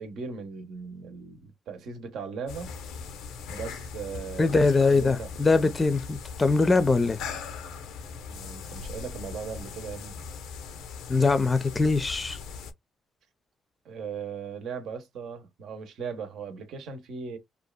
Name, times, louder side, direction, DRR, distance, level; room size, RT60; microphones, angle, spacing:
voice 1, 0.0-2.8 3.5-5.3 8.3-10.2 13.8-17.4, right 5 dB, 75° right, 0.8 m, -38 dB
sound 1, 2.5-12.7, left 5 dB, 90° left, 0.5 m, -40 dB
voice 2, 4.4-7.2 11.1-12.4, left 3 dB, 25° left, 0.5 m, -22 dB
2.7 x 2.3 x 2.2 m
cardioid pair, 80°, 0 cm